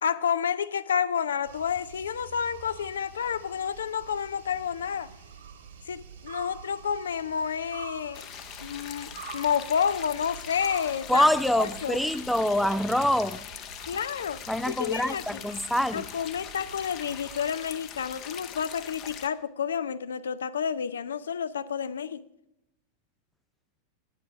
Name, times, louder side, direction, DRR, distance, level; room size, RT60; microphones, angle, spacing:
voice 1, 0.0-5.1 5.9-8.2 8.6-11.3 11.5-12.0 13.9-14.4 14.7-15.4 15.9-22.2, left 7 dB, 65° left, 15 dB, 0.4 m, -30 dB
sound 1, 1.4-17.5, right 6 dB, 60° right, 2.0 m, -47 dB
sound 2, 8.1-19.3, left 9 dB, 35° left, 0.7 m, -42 dB
voice 2, 11.1-13.4 14.5-16.1, left 1 dB, ahead, 13 dB, 0.3 m, -25 dB
9.2 x 8.3 x 5.9 m, 0.85 s
figure-of-eight pair, 90°, 0 cm